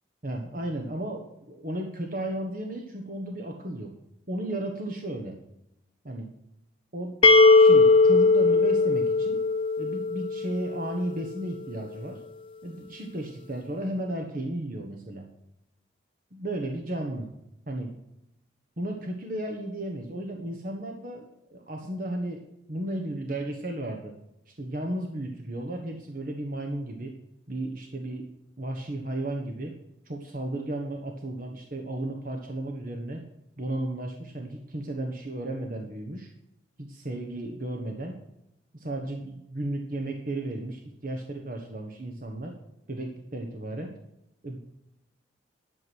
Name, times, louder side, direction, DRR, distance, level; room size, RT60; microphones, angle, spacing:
voice 1, 0.2-3.9 4.3-5.3 6.0-6.3 6.9-7.3 7.6-9.4 9.8-12.2 12.6-15.3 16.3-17.3 17.7-17.9 18.8-22.4 22.7-24.1 24.5-27.1 27.5-28.3 28.6-29.7 30.1-33.2 33.6-36.3 36.8-38.2 38.7-42.5 42.9-43.9 44.4-44.6, right 1 dB, 45° right, 2 dB, 1.3 m, -34 dB
sound 1, 7.2-10.9, left 3 dB, 25° left, 0.5 m, -19 dB
11.0 x 7.1 x 6.2 m, 0.85 s
head